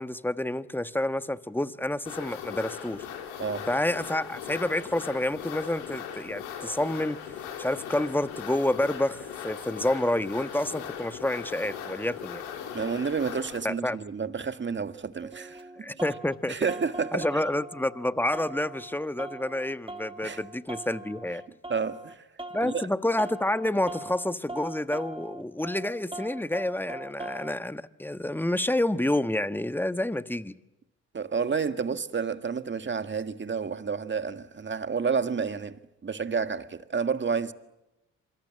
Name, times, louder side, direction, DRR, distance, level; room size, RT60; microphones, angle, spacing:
voice 1, 0.0-3.1 3.7-12.5 13.6-14.0 15.8-16.6 17.1-21.4 22.5-30.5, left 1 dB, 5° left, 1.3 m, -29 dB
sound 1, 2.0-13.6, left 8 dB, 90° left, 4.0 m, -39 dB
voice 2, 12.7-15.9 16.5-17.3 20.2-20.4 21.7-22.3 22.6-22.8 31.1-37.5, right 5 dB, 35° right, 1.8 m, -30 dB
sound 2, 14.8-16.4 16.7-18.1 18.3-22.1 22.4-22.9 23.2-27.6, right 2 dB, 15° right, 2.4 m, -41 dB
27.0 x 25.0 x 7.6 m
hypercardioid pair, 50°, 34 cm